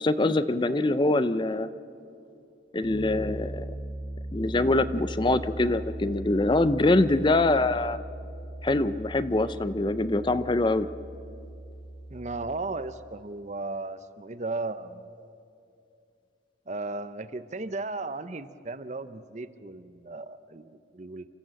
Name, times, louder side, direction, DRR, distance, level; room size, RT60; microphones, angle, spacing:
voice 1, 0.0-1.7 2.7-3.7 4.3-8.0 8.6-10.9, left 2 dB, 25° left, 14 dB, 0.5 m, -24 dB
Piano, 2.8-12.4, right 1 dB, 65° right, 3.7 m, -39 dB
voice 2, 12.1-15.1 16.7-21.3, right 3 dB, 40° right, 13 dB, 0.7 m, -35 dB
29.0 x 14.0 x 7.6 m, 2.6 s
head